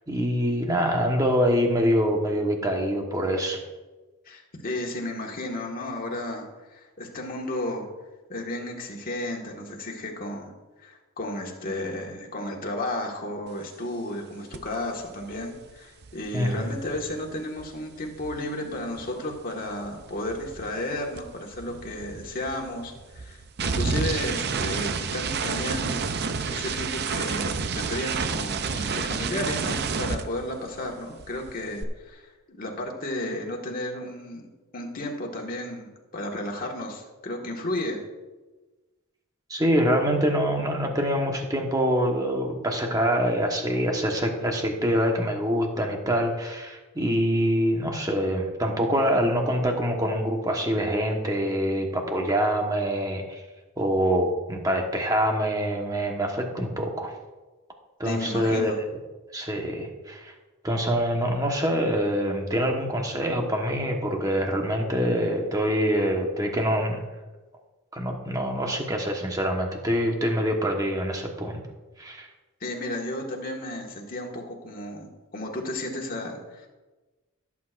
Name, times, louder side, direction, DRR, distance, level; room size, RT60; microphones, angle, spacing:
voice 1, 0.1-3.6 16.3-16.7 39.5-53.4 53.8-57.1 58.0-58.8 59.3-60.3 60.6-67.0 67.9-71.6 72.0-72.3, equal, 15° right, 1 dB, 1.3 m, -25 dB
voice 2, 4.2-7.9 8.3-26.0 26.5-34.5 34.7-38.0 58.0-58.8 72.6-76.7, left 1 dB, 40° left, 0 dB, 1.7 m, -33 dB
sound 1, 14.5-14.7 15.0-19.4 19.6-30.9 31.2-31.8, right 5 dB, 50° right, 0.6 m, -30 dB
16.5 x 8.5 x 2.6 m, 1.2 s
head